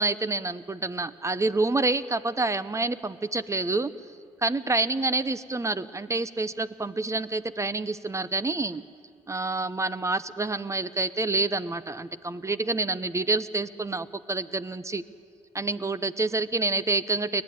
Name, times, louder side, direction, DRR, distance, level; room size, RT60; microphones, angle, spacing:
voice 1, 0.0-3.9 4.4-8.8 9.3-15.0 15.5-17.4, right 3 dB, 25° right, 15 dB, 0.8 m, -28 dB
29.5 x 11.5 x 9.3 m, 2.5 s
supercardioid pair, 65°, 13 cm